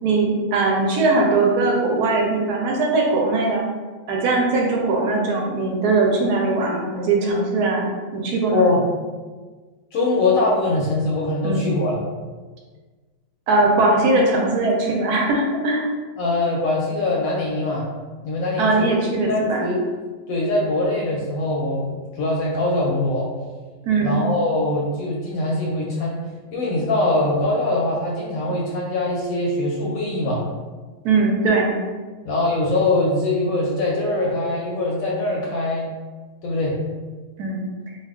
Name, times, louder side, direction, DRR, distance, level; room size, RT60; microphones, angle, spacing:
voice 1, 0.0-3.6 4.1-8.6 11.4-11.6 13.5-15.9 18.6-19.7 23.8-24.2 31.0-31.7 37.4-37.6, right 3 dB, 75° right, -1 dB, 1.0 m, -20 dB
voice 2, 8.5-8.8 9.9-12.1 16.2-17.9 18.2-18.9 19.3-19.8 20.3-23.3 24.0-26.2 26.5-30.4 32.2-35.9 36.4-36.8, left 2 dB, 70° left, -3 dB, 0.9 m, -22 dB
2.6 x 2.2 x 3.4 m, 1.4 s
omnidirectional pair, 1.8 m